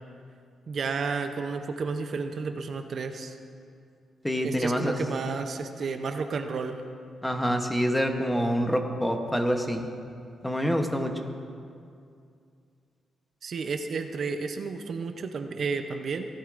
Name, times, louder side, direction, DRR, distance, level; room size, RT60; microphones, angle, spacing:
voice 1, 0.7-3.4 4.4-6.8 13.4-16.3, right 4 dB, 55° right, 6 dB, 0.6 m, -32 dB
voice 2, 4.2-5.0 7.2-9.9 10.4-11.3, equal, 5° left, 4 dB, 0.9 m, -26 dB
16.5 x 11.5 x 2.5 m, 2.4 s
cardioid pair, 110°, 0 cm